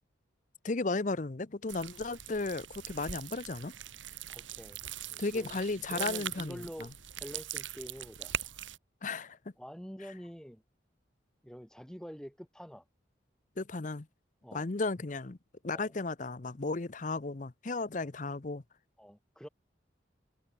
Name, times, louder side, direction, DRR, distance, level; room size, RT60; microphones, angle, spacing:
voice 1, 0.6-3.7 5.2-6.9 9.0-9.4 13.6-14.1 14.5-15.4 15.6-18.6, left 3 dB, 40° left, 0.7 m, -34 dB
sound 1, 1.7-8.8, right 10 dB, 85° right, 2.7 m, -41 dB
voice 2, 4.3-4.8 5.1-5.6 5.9-6.9 7.2-8.3 9.6-10.6 11.4-12.8 14.4-14.7 15.7-15.9 19.0-19.5, equal, 5° left, 2.3 m, -46 dB
head